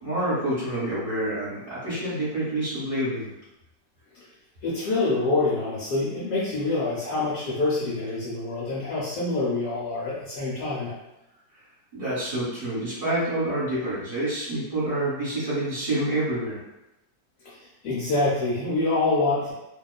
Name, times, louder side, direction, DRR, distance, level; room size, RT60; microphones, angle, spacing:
voice 1, 0.0-3.3 11.9-16.6, right 1 dB, 35° right, -11 dB, 1.2 m, -27 dB
voice 2, 4.6-10.9 17.4-19.5, left 2 dB, 70° left, -7 dB, 1.1 m, -26 dB
2.8 x 2.2 x 2.2 m, 0.92 s
omnidirectional pair, 1.8 m